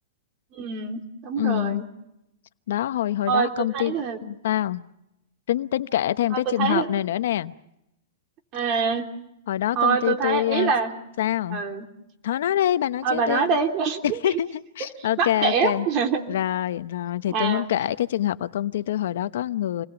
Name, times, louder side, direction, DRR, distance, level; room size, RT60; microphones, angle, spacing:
voice 1, 0.5-1.8 3.3-4.2 6.3-6.9 8.5-9.1 9.7-10.9 11.5-11.8 13.0-14.2 15.2-16.2 17.3-17.7, right 6 dB, 30° right, 4 dB, 3.3 m, -25 dB
voice 2, 1.4-1.8 2.7-3.9 4.2-4.8 5.5-7.5 9.5-10.7 11.2-11.6 12.2-13.5 14.0-15.9 16.3-19.8, left 12 dB, 65° left, 13 dB, 0.9 m, -25 dB
28.5 x 20.5 x 7.0 m, 0.85 s
supercardioid pair, 155°, 0 cm